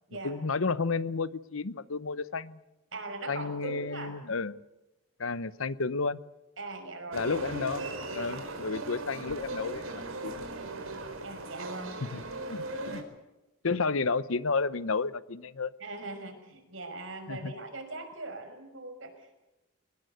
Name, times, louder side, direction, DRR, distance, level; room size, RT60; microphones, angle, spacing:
voice 1, 0.2-2.6 3.3-4.6 5.2-6.2 7.1-7.9 8.1-10.5 12.1-12.2 12.5-13.0 13.6-15.7 17.3-17.5, left 4 dB, 80° left, 17 dB, 0.9 m, -31 dB
voice 2, 2.9-4.1 6.6-7.3 11.2-12.0 15.8-19.4, right 2 dB, 65° right, 6 dB, 5.7 m, -41 dB
sound 1, 7.1-13.0, right 2 dB, 85° right, 4.5 m, -38 dB
23.0 x 20.5 x 8.0 m, 1.0 s
head